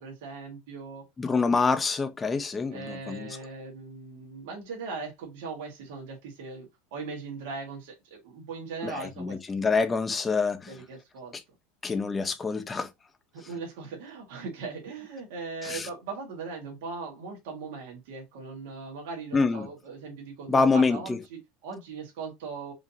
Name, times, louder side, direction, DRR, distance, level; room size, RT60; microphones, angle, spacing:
voice 1, 0.0-1.0 2.7-9.6 10.7-11.3 13.3-22.7, right 4 dB, 80° right, 1.6 m, -39 dB
voice 2, 1.2-3.3 8.8-10.7 11.3-11.4 11.8-12.9 15.6-15.9 19.3-19.7 20.5-21.2, left 4 dB, 15° left, 0.6 m, -26 dB
4.9 x 2.8 x 2.7 m
supercardioid pair, 135°, 0 cm